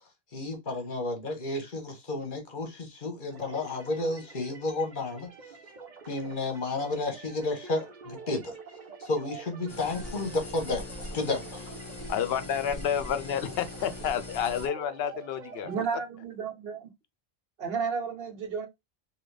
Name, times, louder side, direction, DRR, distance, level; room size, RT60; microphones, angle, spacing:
voice 1, 0.3-5.3 6.1-8.6 9.0-10.9 11.1-11.7, left 2 dB, 55° left, 1.3 m, -32 dB
sound 1, 3.3-15.8, right 5 dB, 50° right, 1.0 m, -47 dB
sound 2, 9.7-14.7, left 2 dB, 30° left, 1.1 m, -41 dB
voice 2, 12.1-15.7, left 8 dB, 75° left, 0.8 m, -30 dB
voice 3, 15.6-16.9 17.6-18.7, right 6 dB, 70° right, 1.2 m, -32 dB
3.9 x 2.8 x 3.3 m
omnidirectional pair, 1.0 m